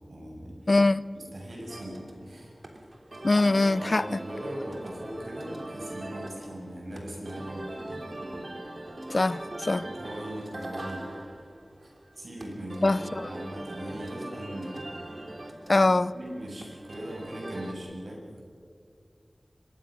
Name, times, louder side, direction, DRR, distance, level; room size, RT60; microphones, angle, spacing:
voice 1, 0.1-0.7 1.1-2.8 3.8-8.0 9.8-11.0 11.8-15.1 16.1-18.4, right 1 dB, 85° right, 7.0 m, -40 dB
voice 2, 0.7-1.0 3.2-4.2 9.1-9.9 12.8-13.3 15.7-16.1, left 2 dB, 55° left, 0.5 m, -23 dB
sound 1, 1.7-17.7, right 1 dB, 55° right, 3.2 m, -41 dB
24.5 x 22.5 x 6.4 m
wide cardioid pair, 70°, 0 cm